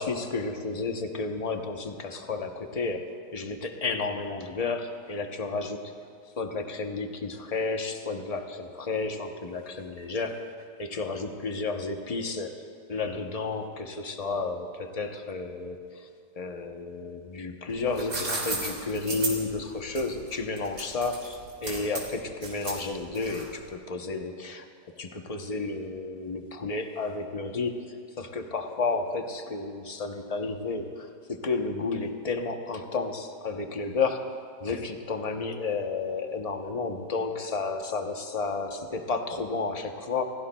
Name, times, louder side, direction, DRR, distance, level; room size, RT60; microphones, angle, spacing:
voice 1, 0.0-5.9 6.4-16.1 16.4-24.7 24.9-34.3 34.6-40.2, left 3 dB, 45° left, 4 dB, 0.5 m, -32 dB
sound 1, 17.7-23.7, right 3 dB, 80° right, 3.7 m, -34 dB
29.5 x 16.0 x 2.3 m, 2.3 s
omnidirectional pair, 1.9 m